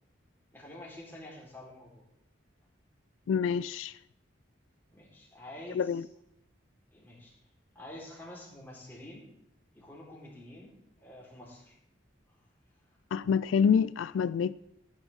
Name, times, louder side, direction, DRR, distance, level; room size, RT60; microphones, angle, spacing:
voice 1, 0.5-2.0 4.9-6.0 6.9-7.3 7.7-9.2 9.7-11.8 12.3-12.4, left 1 dB, 10° left, 4.0 m, -48 dB
voice 2, 3.3-3.9 5.7-6.0 13.1-14.6, left 6 dB, 85° left, 0.3 m, -27 dB
16.0 x 10.5 x 3.6 m
head